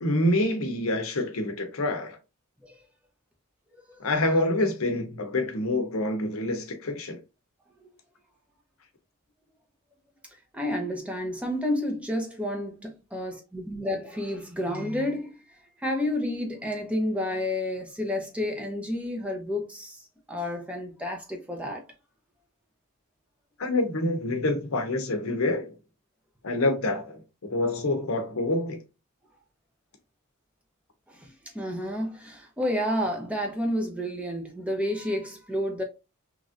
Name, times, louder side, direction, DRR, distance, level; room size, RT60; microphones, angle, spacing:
voice 1, 0.0-2.2 4.0-7.2 23.6-25.7 26.4-28.8, left 2 dB, 70° left, 0.7 m, -27 dB
voice 2, 10.5-15.4 15.8-21.8 31.1-35.8, left 1 dB, 5° right, 0.7 m, -30 dB
3.1 x 2.5 x 2.5 m
head